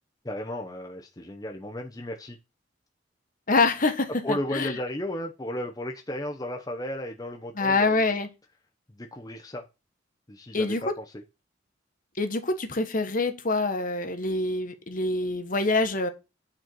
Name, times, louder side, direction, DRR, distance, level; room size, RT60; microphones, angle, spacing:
voice 1, 0.2-2.4 4.2-8.0 8.9-9.7 10.3-11.2, left 1 dB, 20° left, 0.8 m, -34 dB
voice 2, 3.5-4.7 7.6-8.3 10.5-10.9 12.2-16.1, left 3 dB, 45° left, 1.3 m, -25 dB
9.2 x 4.4 x 6.1 m
head